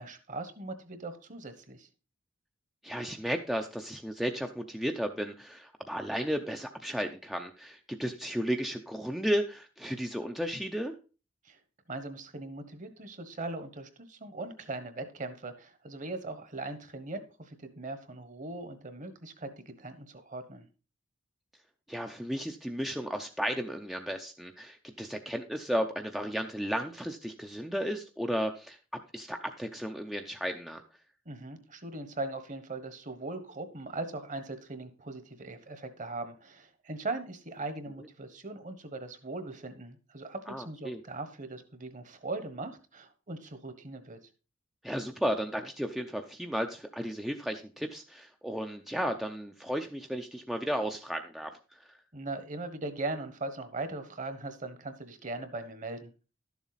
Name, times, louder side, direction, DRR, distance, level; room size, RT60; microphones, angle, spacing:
voice 1, 0.0-1.9 11.4-11.6 11.9-20.7 31.2-44.2 52.1-56.1, right 2 dB, 40° right, 10 dB, 1.2 m, -40 dB
voice 2, 2.8-10.9 21.9-28.8 29.1-30.8 40.5-41.0 44.8-51.5, equal, ahead, 4 dB, 0.5 m, -34 dB
12.0 x 7.2 x 4.0 m, 0.34 s
head